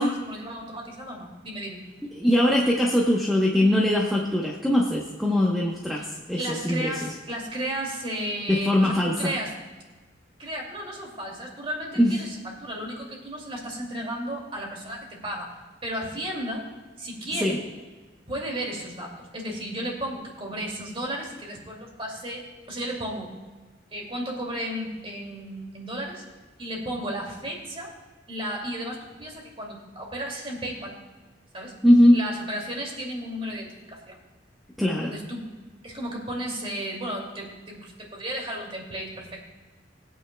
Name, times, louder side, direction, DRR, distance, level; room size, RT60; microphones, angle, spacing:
voice 1, 0.0-1.8 6.0-6.1 6.4-9.6 10.4-15.5 15.8-16.7 17.0-17.6 18.3-23.3 23.9-26.2 26.6-27.9 28.3-31.0 31.5-31.7 32.1-34.2 35.1-35.5 35.8-39.4, right 1 dB, 30° right, 0 dB, 2.4 m, -34 dB
voice 2, 2.1-6.9 8.5-9.3 12.0-12.2 17.4-17.6 31.8-32.2 34.8-35.1, left 1 dB, ahead, -3 dB, 0.9 m, -21 dB
21.0 x 9.0 x 2.2 m, 1.3 s
head